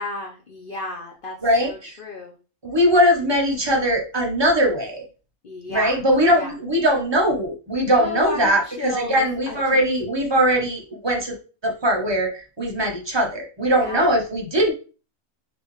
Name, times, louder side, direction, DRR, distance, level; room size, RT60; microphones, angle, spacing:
voice 1, 0.0-1.4 1.6-2.3 5.4-6.0 6.3-6.5 7.9-9.9 13.7-14.1, left 2 dB, 55° left, 0 dB, 0.6 m, -32 dB
voice 2, 1.4-1.9 2.6-5.0 5.7-11.4 11.6-14.7, equal, 25° right, 0 dB, 0.7 m, -20 dB
4.3 x 3.1 x 3.2 m, 0.36 s
omnidirectional pair, 1.5 m